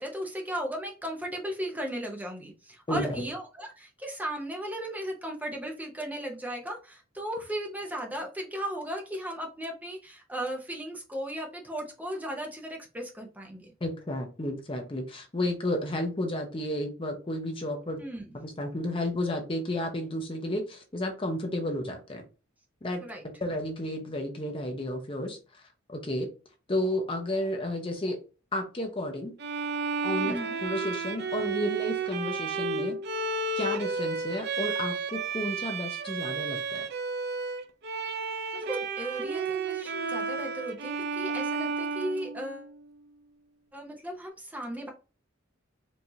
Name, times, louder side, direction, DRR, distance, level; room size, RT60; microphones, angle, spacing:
voice 1, 0.0-13.7 17.9-18.3 23.0-23.2 30.2-30.6 38.5-42.7 43.7-44.9, right 1 dB, 10° right, 1 dB, 0.7 m, -36 dB
voice 2, 13.8-18.0 18.3-22.2 22.8-23.0 23.4-25.6 25.9-26.3 26.7-28.2 28.5-29.3 30.0-30.4 30.6-33.0 33.6-36.8, left 1 dB, 25° left, 3 dB, 0.7 m, -32 dB
Bowed string instrument, 29.4-42.9, right 4 dB, 55° right, 0.5 m, -32 dB
4.6 x 2.7 x 2.7 m, 0.33 s
head